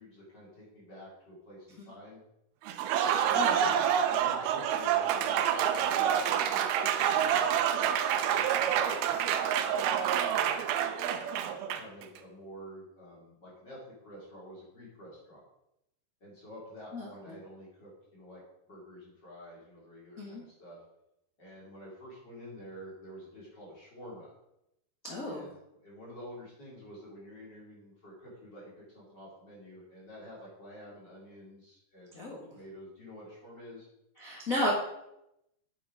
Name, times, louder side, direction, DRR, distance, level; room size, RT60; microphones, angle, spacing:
voice 1, 0.0-2.2 3.2-11.1 11.7-15.4 16.2-18.4 18.7-20.8 21.4-24.3 25.2-32.3 32.5-33.9, equal, 25° left, -6 dB, 3.9 m, -49 dB
Applause, 2.7-12.0, right 9 dB, 85° right, 2.5 m, -28 dB
voice 2, 3.3-3.8 16.9-17.1 20.2-20.4 25.0-25.5 32.1-32.5 34.2-34.7, left 1 dB, 65° left, -4 dB, 0.8 m, -34 dB
8.7 x 8.2 x 4.9 m, 0.85 s
omnidirectional pair, 4.6 m